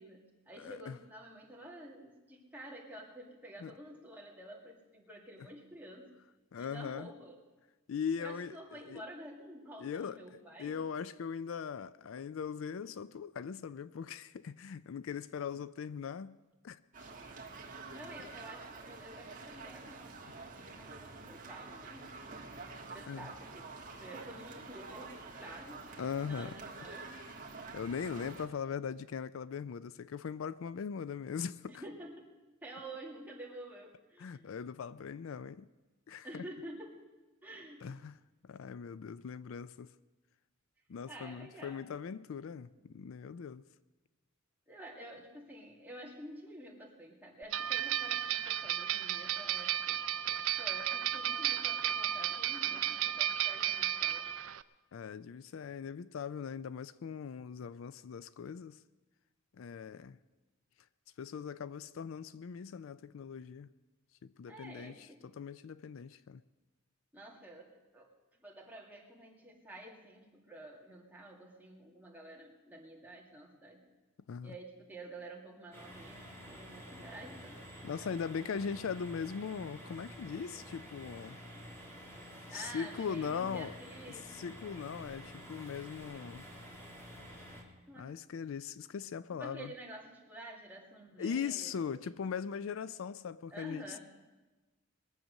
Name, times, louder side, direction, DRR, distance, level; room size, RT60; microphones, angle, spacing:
voice 1, 0.0-6.1 6.6-7.4 8.2-10.8 17.9-22.2 22.8-25.9 26.2-27.1 31.7-32.3 32.6-34.5 36.2-37.0 37.4-37.9 41.1-41.8 44.7-50.0 50.6-54.3 64.5-65.4 67.1-68.1 68.4-73.8 74.4-78.5 82.5-84.3 87.9-88.1 89.3-92.3 93.5-94.0, right 1 dB, 10° right, 2.2 m, -50 dB
voice 2, 0.6-1.0 3.6-3.7 5.4-5.5 6.5-7.1 7.9-8.5 8.9-9.0 9.8-10.2 10.6-16.4 16.6-17.1 23.1-23.3 26.0-26.5 27.7-31.7 34.2-35.7 36.1-36.4 37.8-38.2 38.4-39.9 40.9-43.6 50.3-50.4 54.9-58.8 59.6-60.2 61.2-63.7 64.2-64.9 65.2-66.4 74.3-74.5 77.8-81.4 82.5-83.7 84.1-86.5 88.0-89.7 91.2-94.0, left 6 dB, 70° left, 0.4 m, -40 dB
sound 1, 16.9-28.5, right 3 dB, 40° right, 1.6 m, -48 dB
sound 2, 47.5-54.6, right 11 dB, 70° right, 0.5 m, -33 dB
sound 3, 75.7-87.6, equal, 10° left, 2.3 m, -50 dB
21.5 x 7.6 x 6.5 m
head